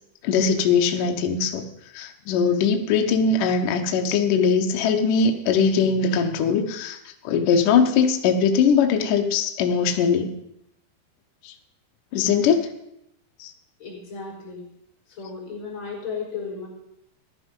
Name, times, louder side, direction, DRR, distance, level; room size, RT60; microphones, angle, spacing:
voice 1, 0.2-1.6 1.9-7.0 7.2-10.3 11.4-11.5 12.1-12.7 13.4-13.5, left 6 dB, 65° left, 4 dB, 2.2 m, -21 dB
voice 2, 13.8-14.7 15.1-16.7, left 5 dB, 30° left, -2 dB, 4.9 m, -34 dB
15.5 x 11.0 x 5.4 m, 0.81 s
omnidirectional pair, 5.0 m